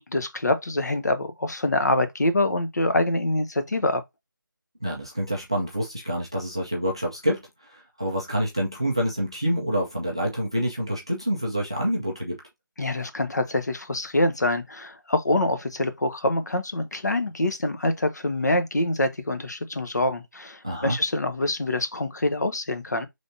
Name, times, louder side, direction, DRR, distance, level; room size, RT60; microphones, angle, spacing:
voice 1, 0.0-4.0 12.8-23.1, left 1 dB, 55° left, 0.9 m, -25 dB
voice 2, 4.8-12.4 20.6-21.0, equal, 15° right, 0.4 m, -27 dB
5.5 x 3.4 x 2.6 m
figure-of-eight pair, 175°, 11 cm